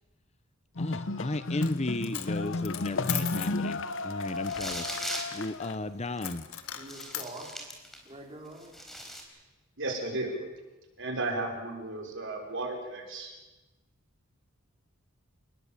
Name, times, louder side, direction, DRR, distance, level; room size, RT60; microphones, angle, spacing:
sound 1, 0.8-5.8, left 2 dB, 60° left, 1.0 m, -33 dB
voice 1, 0.8-6.5, left 2 dB, 30° left, 13 dB, 0.8 m, -35 dB
Coin (dropping), 1.5-1.8 2.0-3.6 6.2-7.3, left 12 dB, 90° left, 1.7 m, -37 dB
sound 2, 4.4-5.4 6.2-6.3 6.8-8.1 8.5-9.2, equal, ahead, 4.3 m, -39 dB
voice 2, 6.7-7.7 8.0-8.8, right 2 dB, 25° right, 0 dB, 4.9 m, -45 dB
voice 3, 9.8-10.4 11.0-13.3, right 2 dB, 60° right, 2 dB, 5.5 m, -34 dB
29.5 x 20.5 x 7.4 m, 1.1 s
head